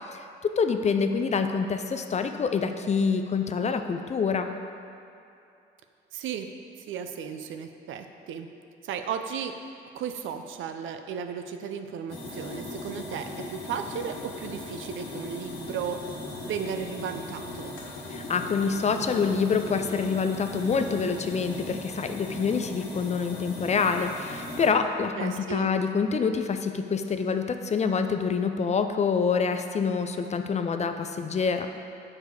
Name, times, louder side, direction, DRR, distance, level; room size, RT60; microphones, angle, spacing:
voice 1, 0.1-4.5 18.1-31.7, left 5 dB, 35° left, 7 dB, 0.5 m, -26 dB
voice 2, 6.1-6.5 6.9-8.5 8.8-9.6 9.9-16.0 16.4-17.8 25.2-25.7, right 7 dB, 75° right, 7 dB, 0.5 m, -35 dB
sound 1, 12.1-24.7, left 2 dB, 80° left, 1.2 m, -39 dB
6.7 x 4.9 x 4.8 m, 2.6 s
cardioid pair, 90°, 20 cm